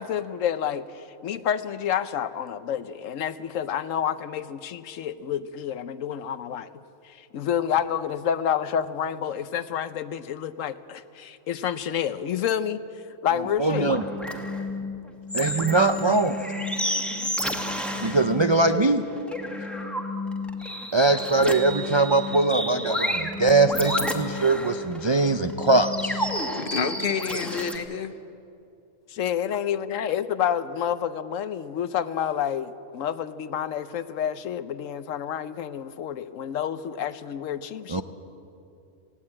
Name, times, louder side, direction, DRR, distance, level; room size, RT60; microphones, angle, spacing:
voice 1, 0.0-6.7 7.0-12.8 13.2-13.9 29.2-38.0, left 9 dB, 75° left, 14 dB, 1.0 m, -29 dB
sound 1, 13.4-27.8, left 1 dB, ahead, 1.4 m, -31 dB
voice 2, 13.6-14.0 15.3-16.4 18.0-19.0 20.9-26.3 37.9-38.0, right 3 dB, 45° right, 8 dB, 0.3 m, -22 dB
voice 3, 26.5-28.1 30.0-30.1, left 6 dB, 45° left, 11 dB, 0.9 m, -29 dB
18.5 x 17.0 x 8.6 m, 2.6 s
omnidirectional pair, 1.4 m